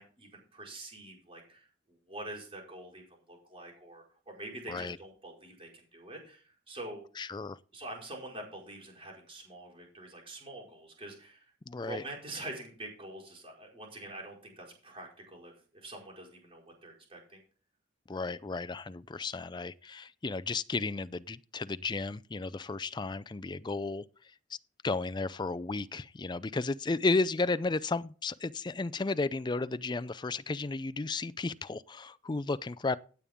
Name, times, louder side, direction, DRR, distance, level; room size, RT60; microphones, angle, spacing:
voice 1, 0.0-7.0 7.7-17.4, right 2 dB, 30° right, 5.0 m, -46 dB
voice 2, 7.2-7.6 11.7-12.0 18.1-24.0 24.8-33.0, left 3 dB, 25° left, 0.4 m, -33 dB
16.0 x 8.5 x 3.6 m
head